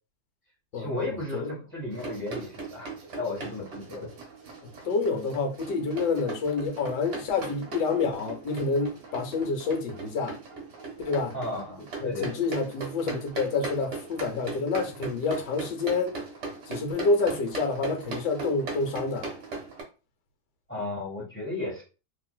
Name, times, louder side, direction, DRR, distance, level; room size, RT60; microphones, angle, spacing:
voice 1, 0.7-2.9 3.2-4.1 11.3-12.4 20.7-21.8, left 2 dB, 10° left, 0.9 m, -34 dB
sound 1, 1.9-19.8, right 3 dB, 70° right, 1.5 m, -39 dB
voice 2, 4.8-10.4 11.0-11.3 12.0-16.2 16.7-19.3, left 4 dB, 75° left, 1.3 m, -28 dB
3.2 x 2.9 x 2.3 m
omnidirectional pair, 1.9 m